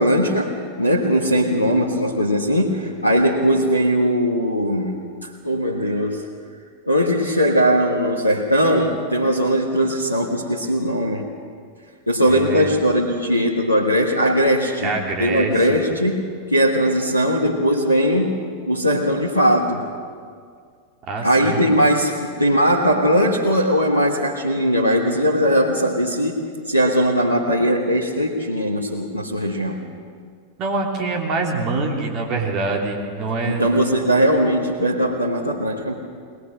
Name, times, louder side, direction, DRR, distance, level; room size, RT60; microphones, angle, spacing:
voice 1, 0.0-5.0 5.2-6.2 6.9-11.2 12.1-14.9 15.2-16.2 16.5-18.4 18.7-19.8 21.2-26.4 26.7-29.8 33.5-35.9, equal, 90° left, -2 dB, 1.4 m, -19 dB
voice 2, 12.3-12.7 14.8-15.7 21.1-21.6 30.6-33.7, right 3 dB, 35° right, 0 dB, 2.9 m, -25 dB
21.0 x 20.0 x 6.3 m, 2.1 s
figure-of-eight pair, 90°, 0 cm